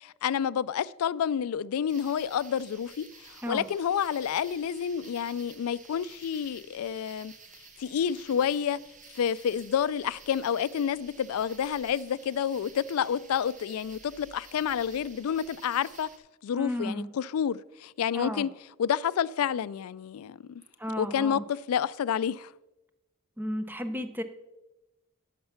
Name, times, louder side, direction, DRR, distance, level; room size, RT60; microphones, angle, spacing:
voice 1, 0.0-7.3 7.8-8.8 9.2-16.1 16.4-18.5 18.8-20.6 21.0-22.5, left 8 dB, 80° left, 0.3 m, -29 dB
sound 1, 1.9-16.2, right 4 dB, 35° right, 1.0 m, -52 dB
voice 2, 16.6-17.1 18.1-18.5 20.8-21.4 23.4-24.2, equal, 10° right, 0.7 m, -33 dB
11.0 x 6.7 x 5.7 m
head